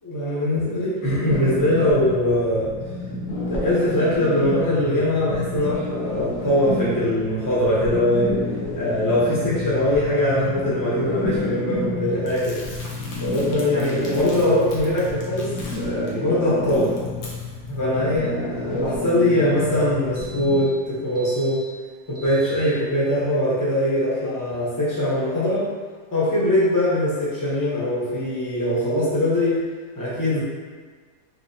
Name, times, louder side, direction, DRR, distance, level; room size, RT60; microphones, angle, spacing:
voice 1, 0.0-2.7 3.5-8.3 8.7-12.6 13.2-17.0 17.7-21.6 22.1-25.6 26.1-29.6 30.0-30.4, left 1 dB, 20° left, -8 dB, 0.6 m, -22 dB
sound 1, 1.3-20.6, left 2 dB, 55° left, 1.0 m, -30 dB
Crumpling crinkling, 12.3-16.1 16.5-17.8, left 2 dB, 90° left, 1.4 m, -42 dB
sound 2, 17.9-18.0 18.2-18.3 18.6-18.7 19.0-19.3 20.1-20.7 21.1-22.9, right 1 dB, 70° right, 0.5 m, -44 dB
3.8 x 3.0 x 2.7 m, 1.5 s
omnidirectional pair, 1.8 m